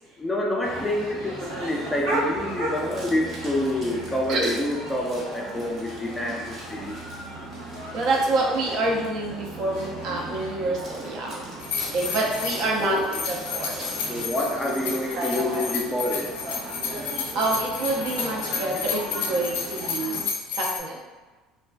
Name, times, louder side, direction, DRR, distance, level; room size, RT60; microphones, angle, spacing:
voice 1, 0.2-7.0 12.8-13.1 14.1-16.3, left 1 dB, 10° left, -1 dB, 0.4 m, -27 dB
sound 1, 0.6-20.2, right 1 dB, 80° right, 0.9 m, -36 dB
sound 2, 2.7-9.2 9.7-9.9 10.4-10.5 10.8-16.3, right 1 dB, 45° right, 0.9 m, -45 dB
voice 2, 7.9-11.5 11.9-13.9 14.8-15.7 17.3-20.3 20.5-21.0, right 2 dB, 65° right, -2 dB, 0.5 m, -27 dB
sound 3, 11.6-20.8, left 6 dB, 90° left, 0.4 m, -31 dB
2.4 x 2.2 x 2.3 m, 1.2 s
supercardioid pair, 110°, 0 cm